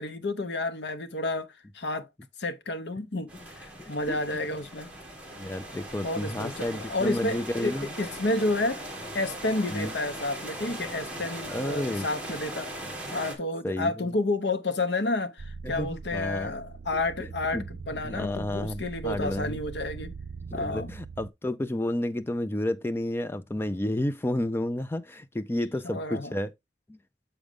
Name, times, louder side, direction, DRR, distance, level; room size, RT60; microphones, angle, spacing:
voice 1, 0.0-2.1 2.4-4.9 6.0-8.8 9.1-12.7 13.1-20.1 20.5-20.9 25.8-26.3, left 2 dB, 75° left, 0.9 m, -30 dB
sound 1, 3.3-13.3, right 1 dB, 5° right, 1.9 m, -39 dB
voice 2, 3.8-4.4 5.4-7.9 9.7-9.9 11.5-12.1 13.6-14.1 15.6-16.5 17.2-17.3 17.5-17.6 18.0-19.6 20.5-26.5 26.9-27.0, left 1 dB, 15° left, 0.4 m, -31 dB
sound 2, 15.4-21.3, right 4 dB, 65° right, 0.4 m, -42 dB
7.0 x 5.1 x 3.4 m
head